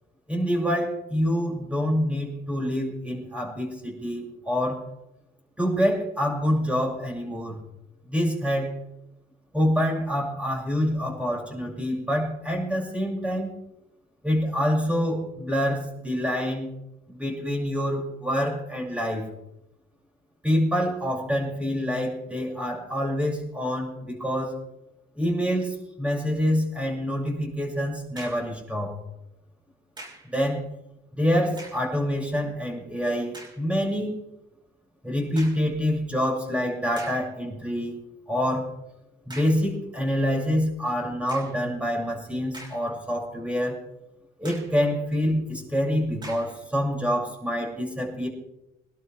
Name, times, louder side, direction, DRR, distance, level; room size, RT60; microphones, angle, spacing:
voice 1, 0.3-4.8 5.6-7.6 8.1-8.8 9.5-13.5 14.2-16.7 17.1-19.3 20.4-24.5 25.1-29.0 30.2-30.6 31.1-34.1 35.0-38.0 38.3-38.7 39.3-43.8 44.4-48.3, equal, 5° right, -2 dB, 6.7 m, -26 dB
sound 1, 28.1-28.6 30.0-30.3 31.5-31.9 32.5-32.6 33.3-33.7 35.4-35.7 36.4-36.5 37.0-37.3 39.3-39.7 41.3-41.7 42.3-43.1 43.5-43.6 44.4-44.8 46.2-46.6, right 1 dB, 25° right, 5.9 m, -44 dB
24.0 x 12.0 x 3.5 m, 0.88 s
cardioid pair, 110°, 17 cm